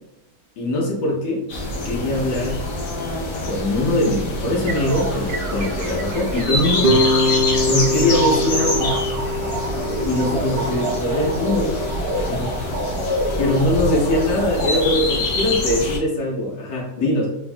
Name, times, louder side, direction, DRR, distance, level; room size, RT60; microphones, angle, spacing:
voice 1, 0.6-1.4 1.8-2.7 3.4-6.9 7.6-9.1 10.0-11.8 12.1-12.7 13.4-17.3, left 1 dB, 85° left, -3 dB, 1.6 m, -22 dB
sound 1, 1.5-16.0, left 2 dB, 65° left, 1.3 m, -26 dB
sound 2, 4.5-14.9, right 1 dB, 65° right, 1.3 m, -28 dB
sound 3, 6.8-11.9, left 1 dB, 35° right, 0.7 m, -23 dB
4.4 x 3.4 x 2.2 m, 0.86 s
omnidirectional pair, 1.9 m